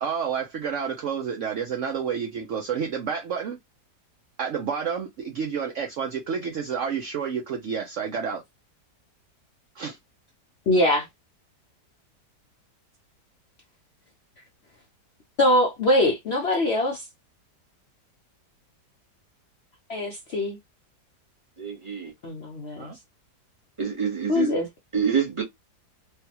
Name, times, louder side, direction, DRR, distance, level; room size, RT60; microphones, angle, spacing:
voice 1, 0.0-3.6 4.4-8.4 9.8-10.0 22.8-23.0, right 7 dB, 65° right, 0.7 m, -29 dB
voice 2, 10.7-11.1 15.4-17.0 19.9-20.6 22.2-22.9 24.3-24.7, left 1 dB, 55° left, 0.7 m, -22 dB
voice 3, 21.6-22.1 23.8-24.5 24.9-25.4, right 7 dB, 20° right, 0.9 m, -26 dB
3.3 x 2.4 x 2.8 m
omnidirectional pair, 1.8 m